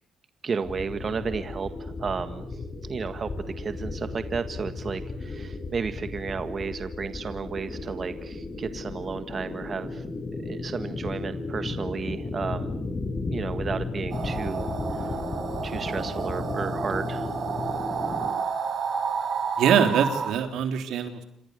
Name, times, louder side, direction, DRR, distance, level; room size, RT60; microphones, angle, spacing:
voice 1, 0.4-3.3 3.6-10.0 10.4-12.7 13.3-15.2 15.6-17.3, right 5 dB, 45° right, 10 dB, 1.7 m, -33 dB
sound 1, 0.6-18.3, left 3 dB, 30° left, 7.7 m, -34 dB
sound 2, 14.1-20.3, right 6 dB, 60° right, 6.8 m, -31 dB
voice 2, 19.6-21.2, right 8 dB, 80° right, 7 dB, 3.8 m, -23 dB
27.5 x 27.0 x 6.9 m, 0.71 s
cardioid pair, 90°, 0 cm